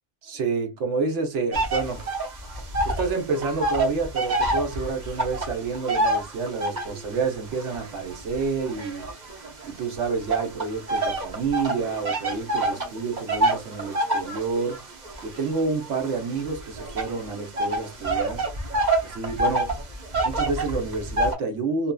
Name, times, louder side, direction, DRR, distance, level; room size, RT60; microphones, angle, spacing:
voice 1, 0.2-2.0 2.8-9.1 9.6-14.8 15.2-18.4 19.0-19.8 20.2-21.9, right 4 dB, 85° right, 1.1 m, -29 dB
sound 1, 1.5-3.1 3.3-7.0 7.6-9.7 10.3-21.3, right 2 dB, 45° right, 0.8 m, -26 dB
2.7 x 2.4 x 2.2 m
omnidirectional pair, 1.2 m